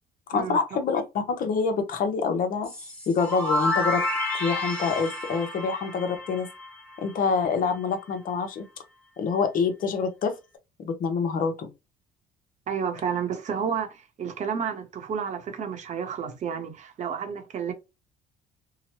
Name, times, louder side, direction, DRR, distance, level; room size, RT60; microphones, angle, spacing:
voice 1, 0.3-2.7 3.1-4.0 4.4-6.5 7.0-8.6 9.2-10.3 10.8-11.7, left 5 dB, 55° left, 0.8 m, -26 dB
sound 1, 2.6-7.4, left 1 dB, 5° left, 1.1 m, -30 dB
voice 2, 12.7-17.7, right 7 dB, 45° right, 0.8 m, -31 dB
2.9 x 2.1 x 2.9 m
cardioid pair, 110°, 17 cm